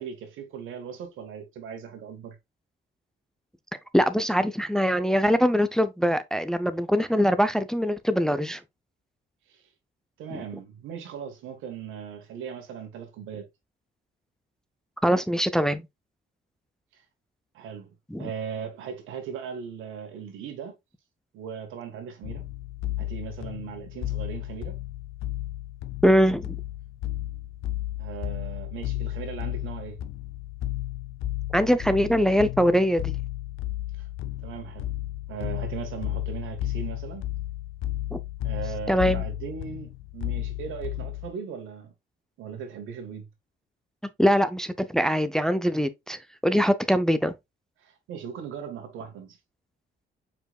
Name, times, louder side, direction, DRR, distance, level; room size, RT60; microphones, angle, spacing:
voice 1, 0.0-2.4 9.5-9.6 10.2-13.5 16.9-17.0 17.5-17.9 18.2-20.7 21.3-22.4 23.0-24.8 28.0-30.0 34.0-34.1 34.4-34.9 35.3-37.2 38.4-41.9 42.4-43.3 47.8-49.4, right 7 dB, 85° right, 1.5 m, -38 dB
voice 2, 3.9-8.6 10.3-10.4 15.0-15.8 18.1-18.3 26.0-26.6 31.5-33.1 38.1-38.2 38.9-39.2 44.2-47.3, equal, 5° left, 0.5 m, -22 dB
sound 1, 22.2-41.3, left 15 dB, 85° left, 0.6 m, -33 dB
5.1 x 4.6 x 2.3 m
cardioid pair, 90°, 20 cm